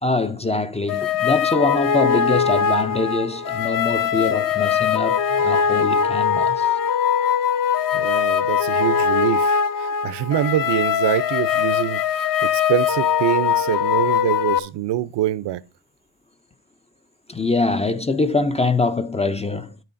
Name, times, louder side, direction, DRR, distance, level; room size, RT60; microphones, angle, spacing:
voice 1, 0.0-6.8 17.3-19.8, left 3 dB, 15° left, 0.4 m, -23 dB
sound 1, 0.9-14.6, left 7 dB, 45° left, 0.7 m, -21 dB
voice 2, 7.9-15.6, right 13 dB, 65° right, 0.7 m, -25 dB
10.5 x 9.1 x 2.6 m
cardioid pair, 130°, 45 cm